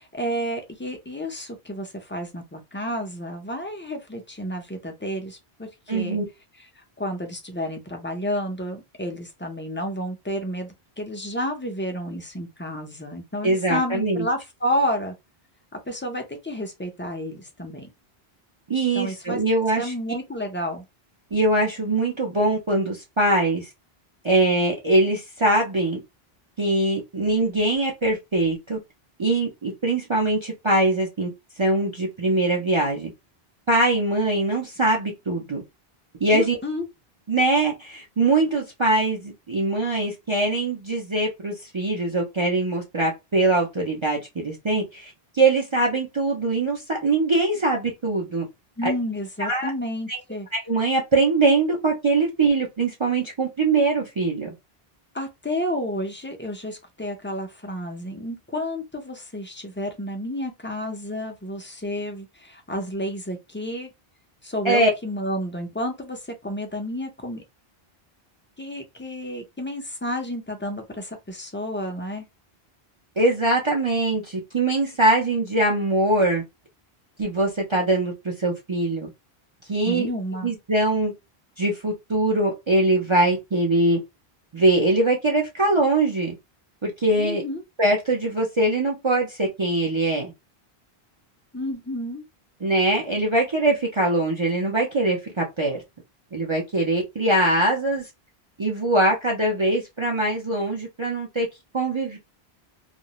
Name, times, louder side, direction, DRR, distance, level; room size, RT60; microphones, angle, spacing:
voice 1, 0.0-6.2 6.6-15.1 15.7-17.9 18.9-19.4 19.8-20.8 36.3-36.9 48.8-50.5 55.1-63.9 64.4-67.4 68.6-72.3 79.8-80.5 87.2-87.6 91.5-92.2, equal, 15° left, 0.4 m, -30 dB
voice 2, 5.9-6.2 13.4-14.3 18.7-19.9 21.3-23.7 24.2-26.0 26.6-28.8 29.2-31.3 31.6-33.1 33.7-35.6 36.2-36.6 37.3-48.4 48.8-48.9 49.4-49.7 50.1-50.2 50.5-54.5 64.6-64.9 73.2-76.4 77.2-79.1 79.7-80.1 80.4-81.1 81.6-84.0 84.5-86.3 86.8-87.4 87.8-90.3 92.6-95.8 96.3-98.0 98.6-101.5 101.7-102.2, right 2 dB, 35° right, 0.5 m, -22 dB
2.5 x 2.0 x 2.9 m
omnidirectional pair, 1.0 m